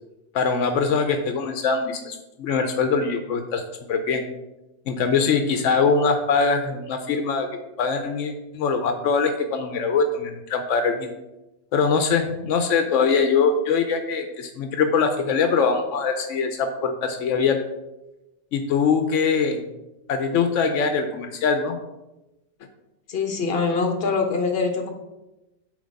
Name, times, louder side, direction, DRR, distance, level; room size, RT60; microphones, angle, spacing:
voice 1, 0.3-3.6 3.9-4.2 4.9-11.1 11.7-17.6 18.5-19.6 20.1-21.8, left 5 dB, 85° left, 6 dB, 1.0 m, -22 dB
voice 2, 23.1-24.9, left 4 dB, 55° left, 4 dB, 1.2 m, -24 dB
8.6 x 3.4 x 5.2 m, 0.97 s
omnidirectional pair, 1.2 m